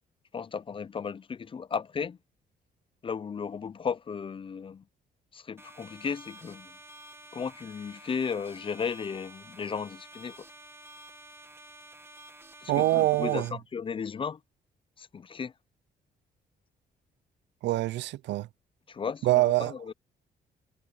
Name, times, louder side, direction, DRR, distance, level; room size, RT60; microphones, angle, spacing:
voice 1, 0.3-2.2 3.0-4.8 5.3-6.7 7.3-10.4 12.6-13.4 13.7-14.4 15.0-15.5 18.9-19.9, left 6 dB, 30° left, 0.4 m, -35 dB
sound 1, 5.6-13.5, right 1 dB, 15° right, 1.7 m, -50 dB
voice 2, 12.7-13.6 17.6-18.5 19.2-19.9, right 17 dB, 85° right, 0.4 m, -25 dB
cardioid pair, 100°, 18 cm